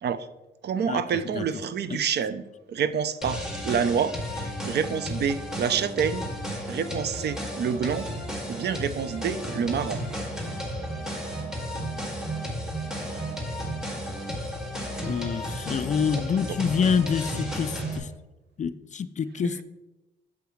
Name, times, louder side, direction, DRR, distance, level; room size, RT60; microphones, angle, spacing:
voice 1, 0.6-6.3 6.7-8.1 8.5-10.0 19.4-19.6, right 7 dB, 55° right, 13 dB, 0.6 m, -28 dB
sound 1, 3.2-18.0, equal, 5° right, 2.1 m, -33 dB
voice 2, 15.0-18.1 18.6-19.6, left 6 dB, 40° left, 13 dB, 0.4 m, -27 dB
8.2 x 7.1 x 3.1 m, 1.0 s
cardioid pair, 90°, 20 cm